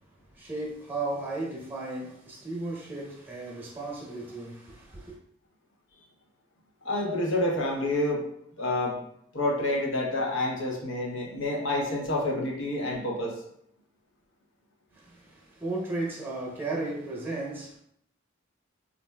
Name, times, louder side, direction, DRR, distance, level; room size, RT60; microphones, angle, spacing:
voice 1, 0.3-5.2 14.9-17.8, right 2 dB, 10° right, 0.8 m, -35 dB
voice 2, 6.8-8.2 8.6-9.0 9.3-13.4, left 1 dB, 85° left, 0.8 m, -28 dB
4.2 x 2.5 x 2.2 m
head